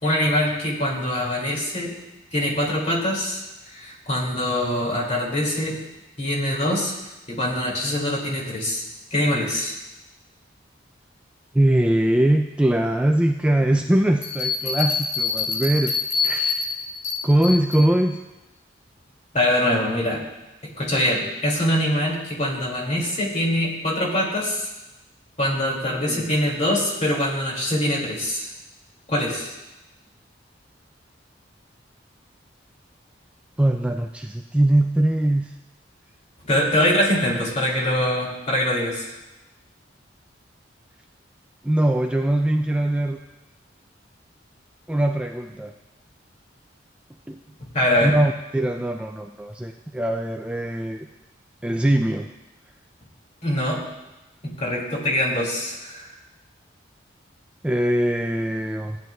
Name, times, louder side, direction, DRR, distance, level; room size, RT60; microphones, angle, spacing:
voice 1, 0.0-1.9 2.3-3.4 3.7-5.8 6.2-6.9 7.3-8.8 9.1-9.8 19.3-20.2 20.8-24.7 25.4-28.5 29.1-29.5 36.5-39.0 47.6-48.1 53.4-53.8 54.4-56.1, left 1 dB, 40° left, -2 dB, 2.4 m, -23 dB
voice 2, 11.5-15.9 16.2-16.6 17.2-18.2 26.1-26.3 33.6-35.5 41.6-43.2 44.9-45.7 47.3-47.4 48.0-51.1 51.6-52.3 57.6-59.0, right 1 dB, 5° right, 3 dB, 0.3 m, -21 dB
sound 1, 14.2-17.9, left 4 dB, 85° left, 3.9 m, -26 dB
16.0 x 9.3 x 2.3 m, 1.0 s
head